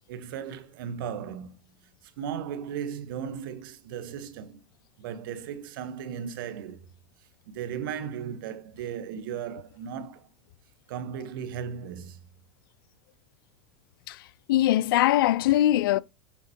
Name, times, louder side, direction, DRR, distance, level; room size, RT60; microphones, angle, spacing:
voice 1, 0.1-1.6 2.0-4.6 5.0-6.9 7.5-10.3 10.9-12.2, right 8 dB, 75° right, 1.0 m, -36 dB
voice 2, 14.1-16.0, left 14 dB, 80° left, 0.4 m, -22 dB
7.0 x 5.8 x 2.8 m
hypercardioid pair, 100°, 12 cm